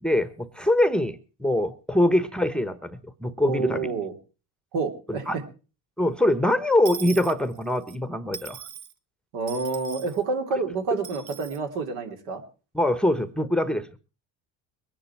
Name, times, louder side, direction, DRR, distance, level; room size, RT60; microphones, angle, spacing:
voice 1, 0.0-3.9 5.1-5.4 6.0-8.6 12.7-13.9, left 1 dB, ahead, 13 dB, 1.0 m, -24 dB
voice 2, 3.4-4.1 4.7-5.4 9.3-12.4, right 4 dB, 75° right, 4 dB, 3.3 m, -28 dB
Dishes pots and pans / Coin (dropping), 6.8-8.0 8.3-8.9 9.5-10.2 11.0-11.6, right 8 dB, 45° right, 1.2 m, -40 dB
22.0 x 10.0 x 4.5 m, 0.35 s
supercardioid pair, 95°, 38 cm